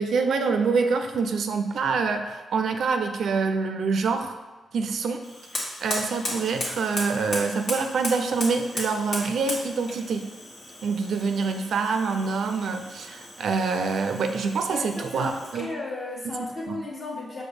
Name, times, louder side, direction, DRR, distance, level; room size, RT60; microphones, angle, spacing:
voice 1, 0.0-4.4 4.7-5.2 5.5-10.3 10.8-15.7 16.2-16.8, right 4 dB, 75° right, 6 dB, 0.3 m, -26 dB
Fire, 5.2-15.8, left 1 dB, 65° left, 1.2 m, -36 dB
voice 2, 14.7-17.4, left 2 dB, 45° left, -3 dB, 1.3 m, -35 dB
5.1 x 2.0 x 4.8 m, 1.2 s
supercardioid pair, 50°, 0 cm